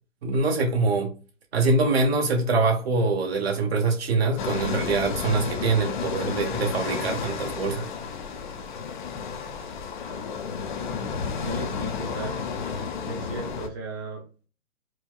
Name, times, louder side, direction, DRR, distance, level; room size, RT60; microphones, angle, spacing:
voice 1, 0.2-1.1 1.5-7.9, right 3 dB, 50° right, 1.2 m, -24 dB
sound 1, 4.4-13.7, left 5 dB, 40° left, 0.5 m, -32 dB
voice 2, 11.4-12.4 12.7-12.8 13.1-14.5, right 3 dB, 20° right, 0.4 m, -36 dB
4.6 x 2.1 x 2.3 m
figure-of-eight pair, 130°, 38 cm